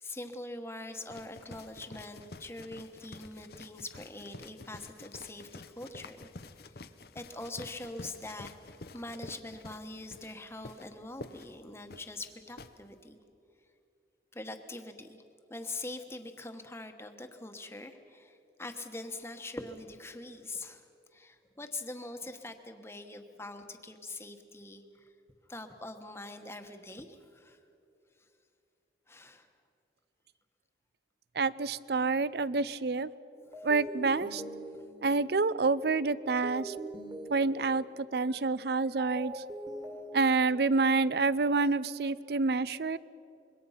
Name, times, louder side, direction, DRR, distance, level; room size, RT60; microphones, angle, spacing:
voice 1, 0.0-6.3 6.7-6.8 7.1-8.5 8.9-13.2 14.3-15.2 15.5-20.9 21.1-25.1 25.5-27.6 29.1-29.5 33.5-33.7, left 2 dB, 15° left, 6 dB, 1.1 m, -43 dB
sound 1, 1.1-12.7, left 3 dB, 55° left, 0.7 m, -49 dB
voice 2, 31.4-33.1 33.6-34.4 35.0-36.8 37.3-39.4 40.1-43.0, right 3 dB, 60° right, 18 dB, 0.5 m, -28 dB
sound 2, 33.5-41.2, right 1 dB, 25° right, 1.9 m, -44 dB
26.0 x 22.5 x 5.7 m, 2.7 s
head